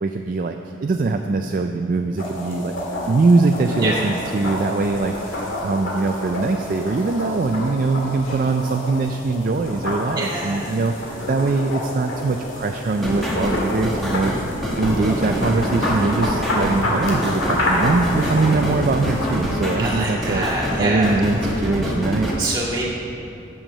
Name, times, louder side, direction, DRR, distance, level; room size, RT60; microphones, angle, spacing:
voice 1, 0.0-2.7 3.1-14.3 14.8-20.5 20.8-22.3, right 3 dB, 40° right, 5 dB, 0.3 m, -22 dB
sound 1, 2.2-19.7, left 1 dB, 85° left, 2.1 m, -28 dB
voice 2, 10.2-10.7 19.8-21.2 22.4-22.9, right 2 dB, 25° right, -6 dB, 2.0 m, -25 dB
sound 2, 13.0-22.3, equal, ahead, 1.3 m, -25 dB
8.8 x 7.1 x 6.5 m, 2.7 s
head